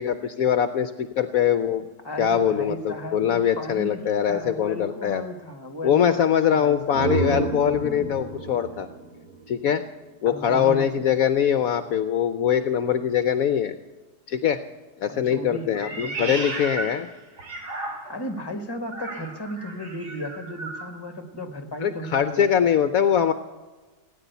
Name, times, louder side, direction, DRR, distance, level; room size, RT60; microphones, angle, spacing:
voice 1, 0.0-1.9 2.2-5.2 5.8-8.9 9.5-9.8 10.2-13.7 14.3-14.6 15.0-17.1 21.8-23.3, left 8 dB, 65° left, 11 dB, 1.1 m, -22 dB
voice 2, 2.0-7.2 10.2-11.3 15.1-16.3 18.1-22.9, equal, 15° left, 7 dB, 1.6 m, -35 dB
sound 1, 6.6-10.3, right 3 dB, 65° right, 2.7 m, -30 dB
Meow, 15.8-18.3 18.9-20.9, right 2 dB, 80° right, 3.0 m, -34 dB
17.0 x 9.9 x 8.1 m, 1.2 s
omnidirectional pair, 1.7 m